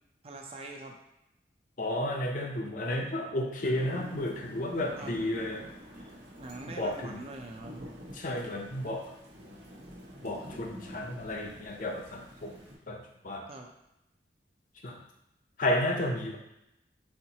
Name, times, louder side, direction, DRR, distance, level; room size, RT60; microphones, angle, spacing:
voice 1, 0.2-1.0 5.0-5.2 6.4-7.9 13.5-13.7, right 2 dB, 35° right, 2 dB, 0.5 m, -43 dB
voice 2, 1.8-5.7 6.8-7.2 8.1-9.1 10.2-12.5 12.9-13.5 14.8-15.0 15.6-16.4, left 1 dB, 50° left, 2 dB, 0.6 m, -32 dB
Thunder / Rain, 3.7-12.8, equal, 80° right, 1.0 m, -48 dB
4.3 x 3.9 x 2.8 m, 0.86 s
head